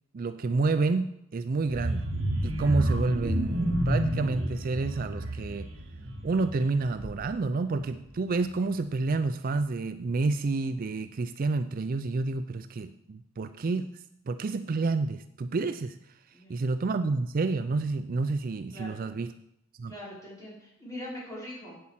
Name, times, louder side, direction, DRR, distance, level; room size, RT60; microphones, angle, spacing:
voice 1, 0.1-2.1 2.4-5.7 6.2-16.0 16.5-19.3 19.8-19.9, right 3 dB, 40° right, 10 dB, 0.4 m, -29 dB
sound 1, 1.7-7.5 7.8-8.1 8.4-8.5, right 1 dB, 65° right, 1.5 m, -30 dB
voice 2, 16.3-16.6 18.7-19.0 19.9-21.8, left 1 dB, 15° left, -6 dB, 4.8 m, -42 dB
8.5 x 8.1 x 7.5 m, 0.79 s
head